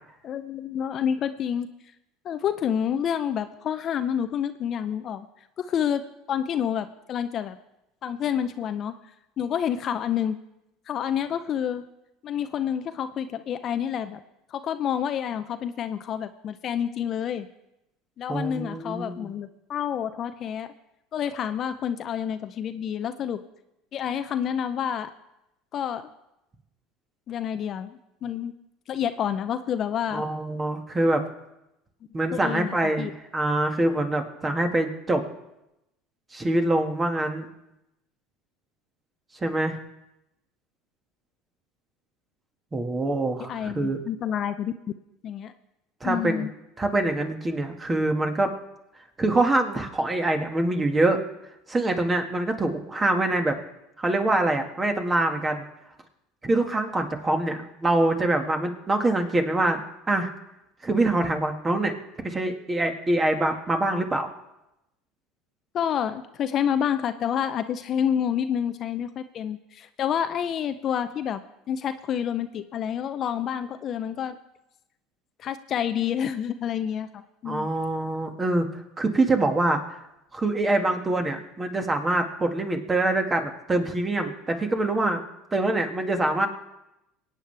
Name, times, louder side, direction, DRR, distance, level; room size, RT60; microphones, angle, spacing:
voice 1, 0.2-1.7 2.2-5.3 5.6-7.6 8.0-8.9 9.4-10.4 10.9-11.8 12.2-14.2 14.5-17.5 18.2-20.7 21.1-23.4 23.9-25.1 25.7-26.1 27.3-28.5 28.9-30.2 32.3-33.1 43.5-44.8 45.2-45.5 46.0-46.5 65.7-74.4 75.4-77.7, left 9 dB, 45° left, 10 dB, 0.6 m, -28 dB
voice 2, 18.3-19.3 30.1-31.3 32.1-35.2 36.3-37.5 39.4-39.8 42.7-44.0 46.0-46.4 46.8-48.5 49.2-51.2 51.7-53.6 54.0-55.7 56.4-59.8 60.1-60.3 60.8-61.9 62.2-64.3 77.5-78.7 79.0-79.8 80.3-85.2 85.5-86.5, right 2 dB, 20° right, 4 dB, 1.9 m, -24 dB
23.0 x 9.0 x 3.4 m, 0.89 s
hypercardioid pair, 85°, 0 cm